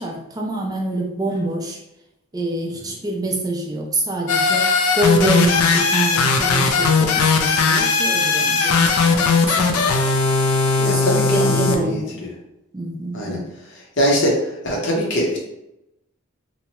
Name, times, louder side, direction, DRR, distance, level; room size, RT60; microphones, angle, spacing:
voice 1, 0.0-1.8 2.3-9.9 10.8-12.2 12.7-13.5, right 1 dB, 15° right, -1 dB, 0.3 m, -26 dB
sound 1, 4.3-11.7, left 4 dB, 80° left, 0.4 m, -18 dB
voice 2, 10.8-12.3 13.1-13.4 14.0-15.4, equal, 50° left, -2 dB, 0.8 m, -22 dB
2.7 x 2.1 x 2.9 m, 0.88 s
head